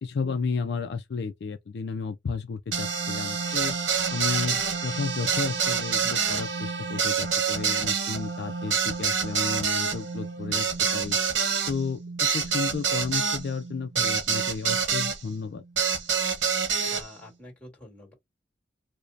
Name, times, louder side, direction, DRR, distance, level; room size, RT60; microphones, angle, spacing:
voice 1, 0.0-3.8 4.1-11.2 11.7-15.6, left 5 dB, 60° left, 0.4 m, -32 dB
sound 1, 2.7-15.2 15.8-17.0, right 6 dB, 85° right, 0.8 m, -27 dB
voice 2, 16.8-18.1, left 1 dB, 10° left, 1.8 m, -47 dB
4.8 x 2.1 x 2.7 m
head